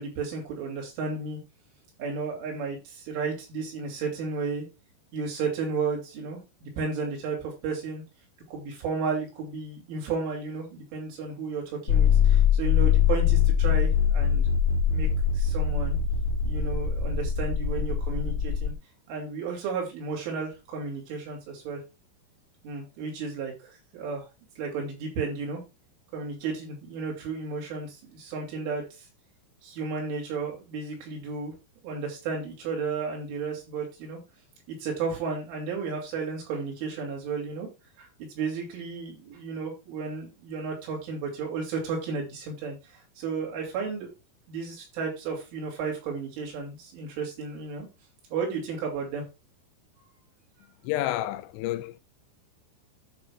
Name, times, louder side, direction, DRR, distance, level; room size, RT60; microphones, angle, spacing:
voice 1, 0.0-1.4 2.0-4.7 5.1-8.0 8.5-15.1 15.4-16.0 16.5-18.7 19.1-21.8 22.6-23.5 23.9-24.3 24.6-25.6 26.1-28.8 29.6-31.5 31.8-34.2 34.7-37.7 38.0-38.1 38.4-42.8 43.2-44.1 44.5-47.9 48.3-49.2, right 4 dB, 85° right, 5.3 m, -33 dB
sound 1, 11.9-18.7, left 7 dB, 60° left, 2.0 m, -23 dB
voice 2, 50.8-52.0, left 14 dB, 85° left, 2.8 m, -30 dB
14.0 x 5.9 x 2.4 m
omnidirectional pair, 5.4 m